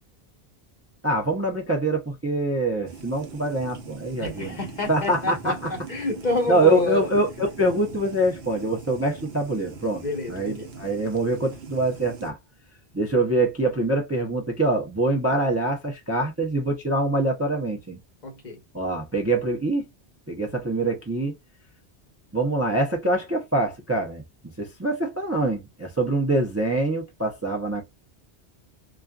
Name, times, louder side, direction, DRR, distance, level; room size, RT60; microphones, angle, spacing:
voice 1, 1.0-4.6 4.9-5.5 6.5-12.4 12.9-18.0 18.7-19.9 20.3-21.3 22.3-24.2 24.6-27.8, right 2 dB, 20° right, 0.5 m, -24 dB
sound 1, 2.9-12.3, right 4 dB, 70° right, 0.9 m, -42 dB
voice 2, 4.2-7.1 10.0-10.7 18.2-18.6, left 2 dB, 45° left, 1.1 m, -28 dB
2.5 x 2.4 x 2.2 m
omnidirectional pair, 1.1 m